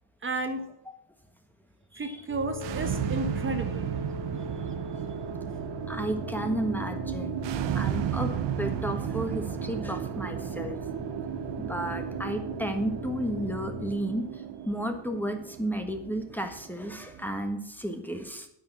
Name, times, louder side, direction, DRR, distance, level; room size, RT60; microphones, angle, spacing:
voice 1, 0.2-0.6 2.0-3.9 4.6-4.7, right 2 dB, 30° right, 6 dB, 1.3 m, -32 dB
sound 1, 2.3-13.9, left 3 dB, 80° left, 2.2 m, -40 dB
sound 2, 2.5-17.5, right 10 dB, 75° right, 1.1 m, -34 dB
voice 2, 5.9-8.3 8.6-10.8 11.6-18.5, right 1 dB, 5° left, 5 dB, 1.4 m, -33 dB
9.8 x 9.6 x 6.1 m, 0.76 s
cardioid pair, 145°, 43 cm